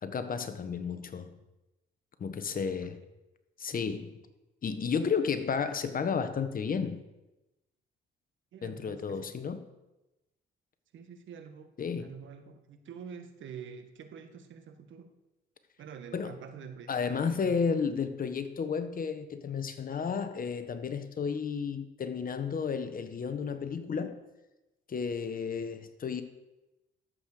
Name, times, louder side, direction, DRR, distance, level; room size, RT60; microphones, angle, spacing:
voice 1, 0.0-1.4 2.2-3.0 3.6-4.2 4.6-7.1 8.6-9.6 11.8-12.1 16.1-16.3 16.9-24.2 24.9-26.2, left 6 dB, 45° left, 1.2 m, -32 dB
voice 2, 8.5-9.3 10.9-11.7 12.0-15.1 15.8-17.6, right 7 dB, 75° right, 1.5 m, -47 dB
12.5 x 7.8 x 6.7 m
cardioid pair, 90°, 20 cm